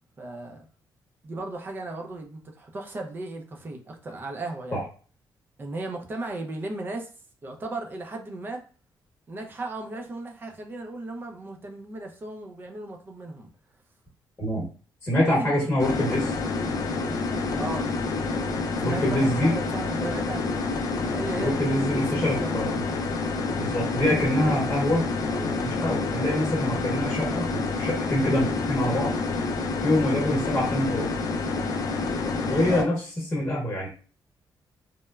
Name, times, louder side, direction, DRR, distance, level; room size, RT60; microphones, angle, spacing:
voice 1, 0.2-0.6 1.2-4.8 5.6-7.1 7.4-8.6 9.3-13.5 15.2-15.7 17.6-17.9 18.5-22.8 32.7-32.9, right 2 dB, 25° right, 0.4 m, -36 dB
voice 2, 15.0-16.3 18.8-19.5 21.4-22.7 23.6-25.0 25.3-29.1 29.8-31.1 32.4-32.9 33.3-33.9, left 1 dB, 20° left, 0.9 m, -25 dB
sound 1, 15.8-32.8, left 3 dB, 45° left, 0.3 m, -28 dB
3.0 x 2.0 x 2.2 m
wide cardioid pair, 175°, 8 cm